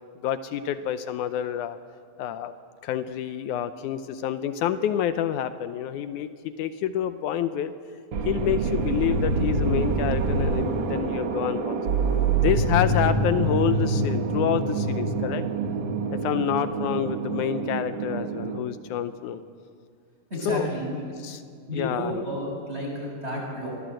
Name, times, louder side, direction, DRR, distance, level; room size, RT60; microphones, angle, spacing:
voice 1, 0.2-1.8 2.2-2.5 2.8-6.3 6.6-7.7 8.3-11.8 12.3-15.4 16.1-19.4 20.5-20.7 21.2-21.4 21.7-22.2, left 10 dB, 80° left, 11 dB, 1.7 m, -28 dB
sound 1, 8.1-18.6, right 3 dB, 75° right, 1.1 m, -26 dB
voice 2, 20.3-21.0 21.7-23.7, equal, 15° right, -2 dB, 7.1 m, -31 dB
25.5 x 19.0 x 7.7 m, 2.2 s
omnidirectional pair, 4.3 m